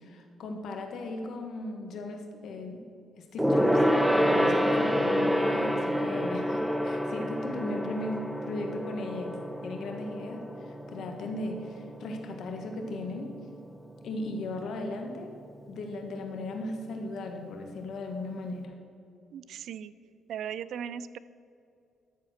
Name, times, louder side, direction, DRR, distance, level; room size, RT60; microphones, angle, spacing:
voice 1, 0.0-2.9 3.2-3.8 4.1-13.4 14.0-15.3 15.7-18.7, left 2 dB, 70° left, 4 dB, 1.3 m, -37 dB
Gong, 3.4-13.2 13.5-13.7 14.0-14.1, equal, ahead, 0.6 m, -28 dB
voice 2, 19.3-19.9 20.3-21.2, right 8 dB, 70° right, 16 dB, 0.3 m, -37 dB
12.5 x 4.2 x 6.3 m, 2.5 s
cardioid pair, 90°, 0 cm